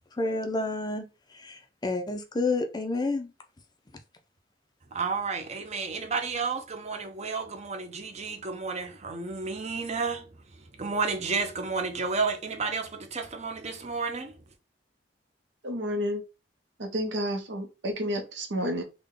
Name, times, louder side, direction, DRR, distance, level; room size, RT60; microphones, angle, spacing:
voice 1, 0.1-3.3, left 3 dB, 20° left, 0.5 m, -30 dB
voice 2, 4.9-14.4, right 4 dB, 35° right, 0.6 m, -32 dB
voice 3, 15.6-16.2 16.8-18.8, equal, 75° right, 0.9 m, -30 dB
3.6 x 2.2 x 3.6 m
head